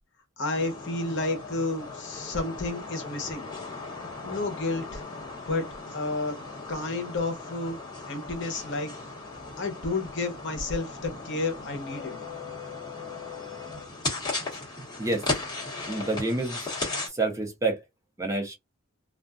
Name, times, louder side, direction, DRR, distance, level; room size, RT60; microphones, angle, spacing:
voice 1, 0.4-3.5 4.2-5.0 5.5-5.6 5.9-6.4 6.7-7.8 8.1-8.9 9.6-12.2, left 2 dB, 55° left, 0.9 m, -31 dB
sound 1, 0.5-17.1, left 3 dB, 20° left, 1.1 m, -37 dB
voice 2, 15.9-16.6 17.1-17.8 18.2-18.5, right 2 dB, 15° right, 0.6 m, -28 dB
2.5 x 2.4 x 2.2 m
head